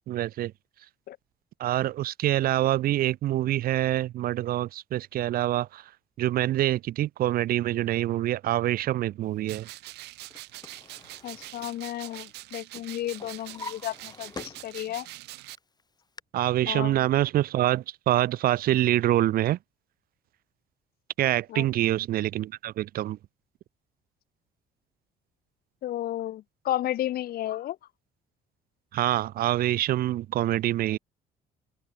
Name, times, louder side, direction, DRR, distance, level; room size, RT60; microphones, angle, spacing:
voice 1, 0.1-0.5 1.6-5.8 6.2-9.7 16.3-19.6 21.2-23.2 28.9-31.0, right 14 dB, 60° right, 0.6 m, -25 dB
sound 1, 9.5-15.6, right 18 dB, 80° right, 1.2 m, -44 dB
Drawer open or close, 10.0-12.5 12.8-15.1 15.5-16.2, left 4 dB, 25° left, 5.1 m, -46 dB
voice 2, 11.2-15.1 16.7-17.1 21.5-21.7 25.8-27.8, left 13 dB, 65° left, 1.2 m, -33 dB
open air
cardioid pair, 110°, 17 cm